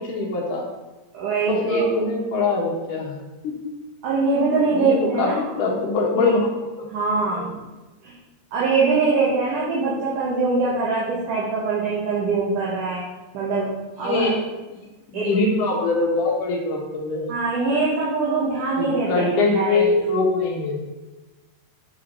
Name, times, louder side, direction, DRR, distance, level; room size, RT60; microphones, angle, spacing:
voice 1, 0.1-0.6 1.5-3.1 3.4-3.5 4.7-6.9 7.3-7.5 14.0-14.4 15.1-17.3 18.8-20.8, left 3 dB, 60° left, -2 dB, 2.8 m, -23 dB
voice 2, 1.1-1.9 4.0-5.5 6.2-6.4 6.9-7.5 8.0-8.1 8.5-13.0 13.3-13.7 14.0-14.4 15.1-15.3 17.3-19.9, right 4 dB, 60° right, -6 dB, 2.7 m, -23 dB
9.8 x 5.0 x 4.6 m, 1.1 s
omnidirectional pair, 4.7 m